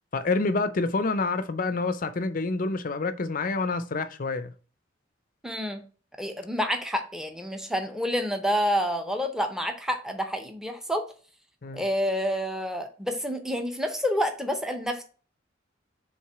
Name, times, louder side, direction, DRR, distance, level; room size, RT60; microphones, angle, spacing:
voice 1, 0.1-4.5 11.6-11.8, left 3 dB, 45° left, 0.5 m, -27 dB
voice 2, 5.4-5.8 6.2-11.1 11.7-15.0, equal, 5° right, 0.7 m, -28 dB
4.8 x 3.7 x 5.5 m
head